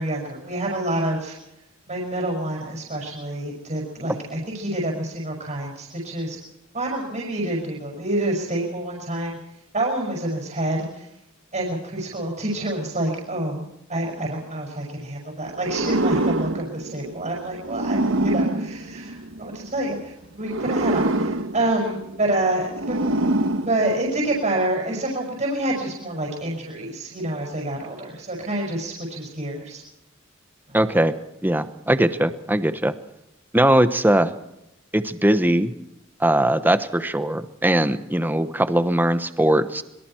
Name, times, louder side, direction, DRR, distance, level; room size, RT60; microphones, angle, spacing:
voice 1, 0.0-1.3 1.9-6.4 6.7-9.4 9.7-11.1 11.5-13.6 13.9-18.0 18.2-23.1 23.7-29.8 30.7-30.8, right 1 dB, 35° right, -2 dB, 5.7 m, -27 dB
sound 1, 15.6-19.7 20.4-24.4, right 1 dB, 65° right, 1.3 m, -25 dB
voice 2, 30.7-31.1 31.4-32.9 33.5-34.3 34.9-35.7 36.2-39.8, right 1 dB, 10° right, 11 dB, 1.0 m, -20 dB
26.0 x 22.5 x 4.5 m, 0.85 s
head